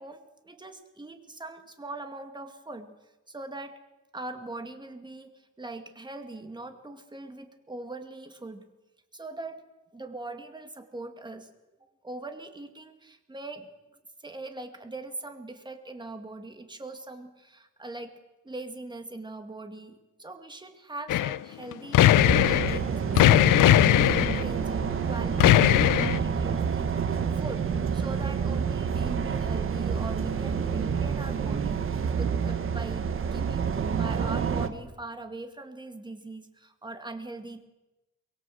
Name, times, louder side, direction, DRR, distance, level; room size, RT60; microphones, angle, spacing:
voice 1, 0.0-2.9 3.3-3.8 4.1-8.6 9.1-9.6 9.9-11.5 11.8-13.7 14.2-18.2 18.4-33.1 33.3-37.6, right 2 dB, 15° right, 7 dB, 2.2 m, -41 dB
sound 1, 21.1-21.4 21.7-22.8 23.2-24.4 25.4-26.2, left 14 dB, 80° left, 0.7 m, -19 dB
sound 2, 22.1-34.7, right 6 dB, 40° right, 1.6 m, -28 dB
24.5 x 22.0 x 7.8 m, 1.0 s
cardioid pair, 145°, 31 cm